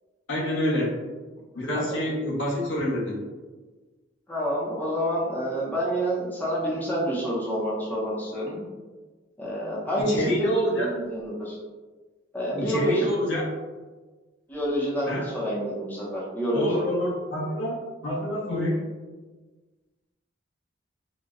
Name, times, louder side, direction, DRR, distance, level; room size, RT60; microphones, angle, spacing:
voice 1, 0.3-1.0 1.5-3.2 10.0-10.9 12.6-13.4 15.1-15.3 16.5-17.8 18.0-18.8, equal, 80° left, -4 dB, 0.8 m, -27 dB
voice 2, 4.3-8.6 9.4-10.5 10.7-11.6 12.3-13.1 14.5-16.8, equal, 10° left, -6 dB, 0.6 m, -28 dB
3.9 x 2.1 x 2.4 m, 1.3 s
head